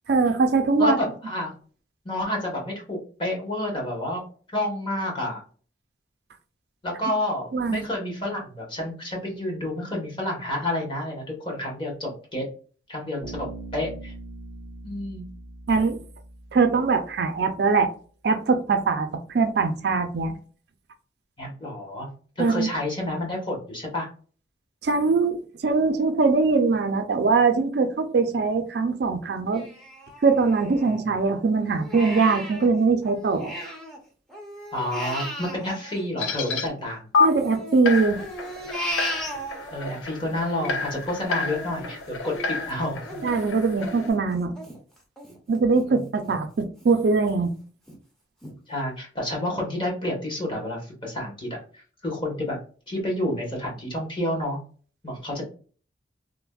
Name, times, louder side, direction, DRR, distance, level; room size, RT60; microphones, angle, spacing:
voice 1, 0.1-1.0 7.5-7.9 15.7-16.0 16.5-17.9 18.2-19.1 19.3-20.4 22.4-22.7 24.8-29.6 30.2-33.5 37.2-38.2 43.2-44.6 45.5-47.5, right 4 dB, 60° right, 7 dB, 0.4 m, -22 dB
voice 2, 0.8-1.5 2.0-4.2 4.5-5.4 6.8-12.4 12.9-14.1 14.8-15.2 21.4-22.1 22.4-24.1 30.8-31.2 34.7-37.0 39.7-43.2 45.9-46.3 48.7-51.6 52.0-52.6 52.9-54.6 55.0-55.4, left 1 dB, 25° left, -1 dB, 0.8 m, -29 dB
Bass guitar, 13.2-17.1, right 2 dB, 60° left, 1.3 m, -41 dB
Crying sobbing, 29.5-31.2 31.6-34.0 34.3-36.7 37.2-40.0 40.4-45.8 46.3-46.4 46.8-47.4 47.9-48.0 48.4-48.5, equal, 5° left, 0.5 m, -37 dB
sound 1, 36.2-36.7 37.1-37.3 37.9-44.1, left 4 dB, 85° left, 0.4 m, -29 dB
3.2 x 2.0 x 2.2 m, 0.40 s
head